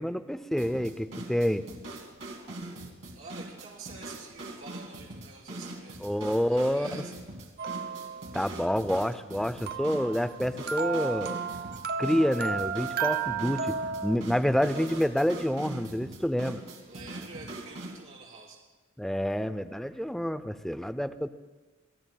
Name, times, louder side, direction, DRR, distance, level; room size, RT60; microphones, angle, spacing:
voice 1, 0.0-1.6 6.0-7.0 8.3-11.4 12.0-16.6 19.0-21.3, equal, ahead, 12 dB, 0.4 m, -28 dB
sound 1, 0.6-18.0, right 2 dB, 65° right, 2.5 m, -42 dB
voice 2, 3.1-6.0 6.5-7.1 16.9-18.6, right 4 dB, 90° right, -5 dB, 3.8 m, -47 dB
sound 2, 7.6-8.5 9.7-14.2, right 6 dB, 50° right, 0.7 m, -33 dB
28.5 x 19.0 x 2.2 m, 1.2 s
head